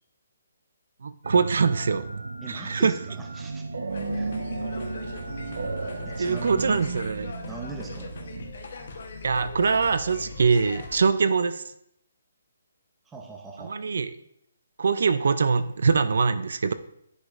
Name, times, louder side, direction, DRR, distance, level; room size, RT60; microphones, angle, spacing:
voice 1, 1.0-2.1 2.5-2.9 6.2-7.3 9.2-11.7 13.6-14.1 14.8-16.7, right 5 dB, 60° right, 13 dB, 0.3 m, -23 dB
sound 1, 1.2-8.5, right 3 dB, 90° right, 0.7 m, -34 dB
voice 2, 2.4-3.6 4.1-4.3 6.0-6.8 7.4-8.1 13.1-13.8, right 4 dB, 5° right, 1 dB, 0.5 m, -40 dB
sound 2, 3.9-11.1, left 3 dB, 50° left, 0.9 m, -40 dB
10.0 x 5.0 x 2.4 m, 0.74 s
hypercardioid pair, 175°, 0 cm